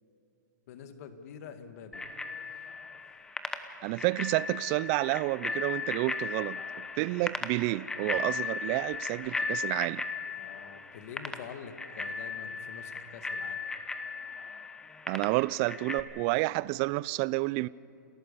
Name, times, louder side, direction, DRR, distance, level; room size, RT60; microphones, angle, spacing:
voice 1, 0.7-2.0 10.4-13.6, left 7 dB, 50° left, 2.0 m, -46 dB
Bicycle bell, 1.9-16.0, left 4 dB, 5° left, 1.0 m, -37 dB
voice 2, 3.8-10.0 15.1-17.7, right 21 dB, 35° right, 0.4 m, -30 dB
29.5 x 14.0 x 7.0 m
hypercardioid pair, 135°, 10 cm